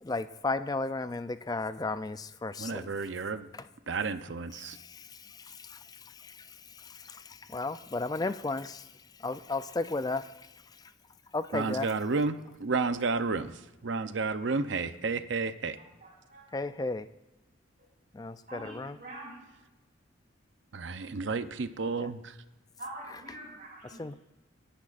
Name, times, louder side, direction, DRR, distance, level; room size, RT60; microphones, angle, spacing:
voice 1, 0.0-2.8 5.7-5.8 7.1-7.2 7.5-8.8 9.2-10.3 11.3-11.9 16.5-17.1 18.1-19.0 22.0-22.1 24.0-24.1, left 3 dB, 20° left, 13 dB, 0.4 m, -33 dB
voice 2, 2.6-3.5 3.9-4.8 11.5-15.8 20.7-22.3, right 4 dB, 70° right, 11 dB, 0.7 m, -31 dB
voice 3, 15.8-16.4 18.5-19.4 22.8-24.0, right 1 dB, 45° right, -2 dB, 5.4 m, -45 dB
27.0 x 10.0 x 2.5 m, 1.1 s
head